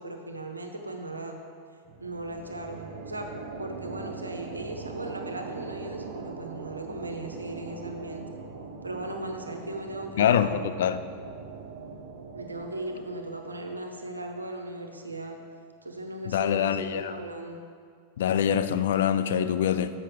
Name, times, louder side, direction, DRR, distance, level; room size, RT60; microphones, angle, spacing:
voice 1, 0.0-1.4 2.0-3.3 3.6-8.2 8.8-10.7 12.3-15.4 15.8-17.6, right 2 dB, 80° right, 4 dB, 0.7 m, -37 dB
sound 1, 1.9-15.2, right 4 dB, 50° right, 0.8 m, -42 dB
voice 2, 10.2-11.0 16.3-17.3 18.2-19.9, left 9 dB, 60° left, 11 dB, 0.3 m, -25 dB
7.3 x 5.5 x 4.6 m, 2.2 s
figure-of-eight pair, 90°, 0 cm